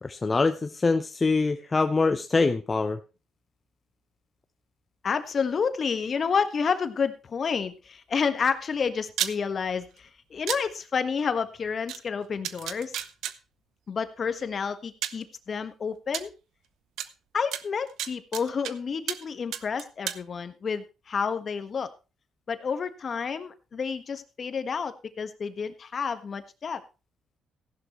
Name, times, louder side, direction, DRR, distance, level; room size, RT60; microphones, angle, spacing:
voice 1, 0.0-3.0, left 3 dB, 25° left, 8 dB, 0.7 m, -24 dB
voice 2, 5.0-13.0 13.9-16.3 17.3-21.9 22.5-26.8, left 6 dB, 45° left, 10 dB, 1.4 m, -30 dB
sound 1, 9.1-9.3 10.5-10.6 11.9-12.0 12.4-13.3 14.4-14.5 15.0-15.2 16.1-16.2 17.0-17.1 17.5-18.7 19.1-19.3 19.5-20.2, right 11 dB, 80° right, 0.8 m, -31 dB
15.5 x 11.0 x 3.1 m, 0.30 s
cardioid pair, 90°, 0 cm